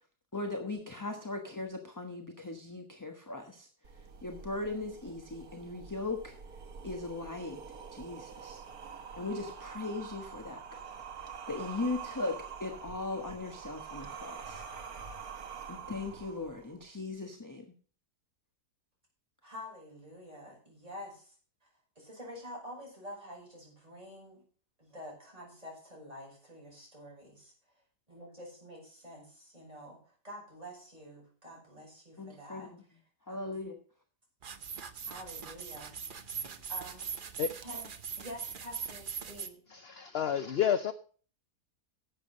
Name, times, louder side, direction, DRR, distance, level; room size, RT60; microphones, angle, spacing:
voice 1, 0.3-6.4 6.8-7.6 7.9-8.6 9.2-14.6 15.7-17.7 32.2-32.8 33.3-33.8, left 3 dB, 15° left, 1.0 m, -39 dB
sound 1, 3.8-16.8, right 6 dB, 65° right, 1.7 m, -46 dB
voice 2, 19.4-21.4 21.6-21.7 22.0-24.4 24.8-27.5 28.1-32.7 33.3-33.6 35.0-35.9 36.7-37.3 37.6-37.9 38.2-39.6, equal, 20° right, 6.9 m, -48 dB
sound 2, 34.4-39.5, right 6 dB, 45° right, 0.8 m, -41 dB
voice 3, 39.7-40.9, left 9 dB, 60° left, 0.6 m, -30 dB
11.0 x 8.0 x 6.4 m
omnidirectional pair, 1.7 m